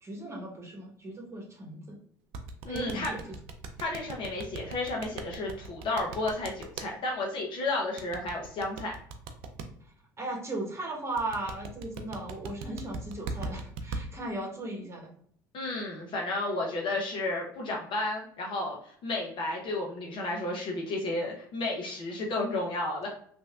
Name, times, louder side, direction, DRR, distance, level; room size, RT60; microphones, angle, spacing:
voice 1, 0.0-2.0 2.7-3.2 10.2-15.1, right 2 dB, 25° right, -1 dB, 1.1 m, -37 dB
sound 1, 2.3-6.9 8.0-9.7 11.2-14.0, right 3 dB, 65° right, 0.4 m, -38 dB
voice 2, 2.6-3.1 3.8-8.9 15.5-23.1, left 2 dB, 50° left, -1 dB, 0.7 m, -32 dB
3.1 x 2.6 x 2.3 m, 0.63 s
hypercardioid pair, 60°, 11 cm